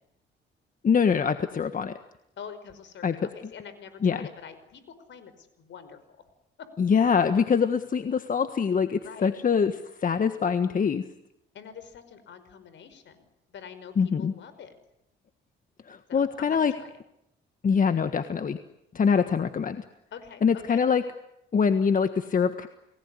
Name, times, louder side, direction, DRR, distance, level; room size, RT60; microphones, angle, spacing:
voice 1, 0.8-1.9 3.0-3.1 4.0-4.2 6.8-9.7 10.0-11.0 14.0-14.3 15.9-16.7 17.6-18.6 18.9-19.8 20.4-21.0 21.5-22.7, left 6 dB, 45° left, 9 dB, 1.5 m, -24 dB
voice 2, 2.4-6.2 6.6-6.7 9.0-9.3 11.5-14.7 16.1-17.0 20.1-20.4 20.7-20.8, left 7 dB, 70° left, 12 dB, 5.2 m, -45 dB
30.0 x 19.5 x 9.9 m, 0.82 s
cardioid pair, 90°, 20 cm